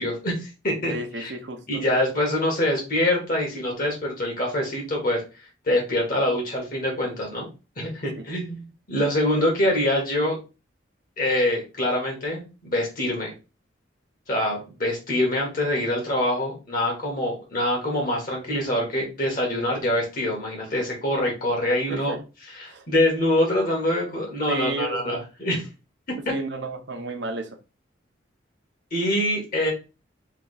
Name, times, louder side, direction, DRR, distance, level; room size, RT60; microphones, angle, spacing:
voice 1, 0.0-1.3 1.7-7.5 7.8-8.6 8.9-10.4 11.2-13.3 14.3-22.1 22.5-25.6 26.1-26.2 28.9-29.7, left 1 dB, 45° left, 1.5 m, -25 dB
voice 2, 0.9-1.8 8.2-8.3 21.9-22.2 22.7-22.9 24.5-25.2 26.3-27.6, right 2 dB, 60° right, 0.7 m, -32 dB
3.6 x 2.9 x 4.0 m
head